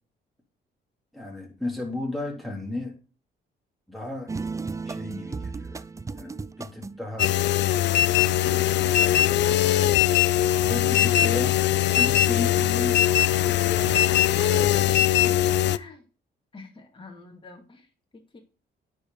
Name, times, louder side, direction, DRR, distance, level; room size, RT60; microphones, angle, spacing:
voice 1, 1.1-3.0 3.9-4.3 4.8-5.8 6.2-7.3 10.6-11.6 11.9-13.0, left 2 dB, ahead, -1 dB, 3.3 m, -35 dB
sound 1, 4.3-7.1, right 4 dB, 15° right, 0.4 m, -34 dB
sound 2, 7.2-15.8, left 13 dB, 65° left, 0.4 m, -21 dB
voice 2, 14.9-16.1 16.5-18.4, left 3 dB, 25° left, 1 dB, 2.4 m, -46 dB
9.6 x 5.1 x 3.9 m, 0.36 s
cardioid pair, 90°, 20 cm